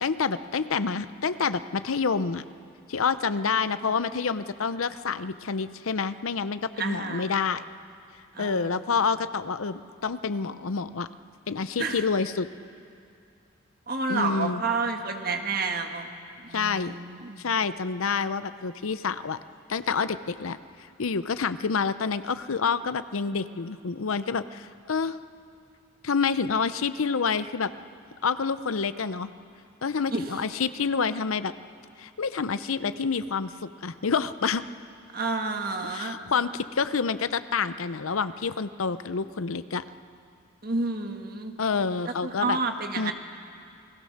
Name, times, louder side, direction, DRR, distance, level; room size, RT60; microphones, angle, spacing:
voice 1, 0.0-2.4 2.9-7.6 8.4-11.1 11.5-12.5 14.1-14.6 16.5-17.0 17.4-19.4 19.7-20.6 21.0-25.2 26.0-27.7 28.2-29.3 29.8-31.5 32.0-34.6 35.8-39.8 41.6-42.6 43.0-43.1, left 5 dB, 85° left, 13 dB, 0.7 m, -28 dB
voice 2, 6.8-7.3 8.3-8.9 11.8-12.0 13.9-16.1 16.4-17.5 30.1-30.2 35.1-36.2 40.6-41.5 42.0-43.1, right 3 dB, 45° right, 5 dB, 1.5 m, -30 dB
28.0 x 18.5 x 6.6 m, 2.4 s
head